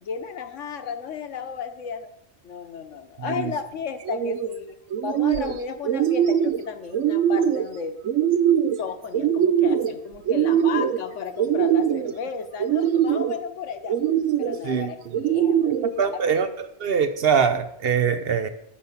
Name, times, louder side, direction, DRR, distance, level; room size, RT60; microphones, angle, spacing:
voice 1, 0.0-2.1 2.4-4.8 5.0-8.0 8.8-13.9 14.4-15.8 16.1-16.2, left 6 dB, 75° left, 1.2 m, -33 dB
sound 1, 4.0-4.5 4.9-5.6 5.8-6.6 6.9-7.7 8.1-8.8 9.1-9.9 10.3-11.0 11.4-12.1 12.6-13.4 13.9-14.6 15.1-15.9, right 9 dB, 85° right, 1.0 m, -22 dB
voice 2, 16.0-18.5, right 6 dB, 55° right, 0.8 m, -23 dB
8.6 x 5.6 x 7.1 m
omnidirectional pair, 1.3 m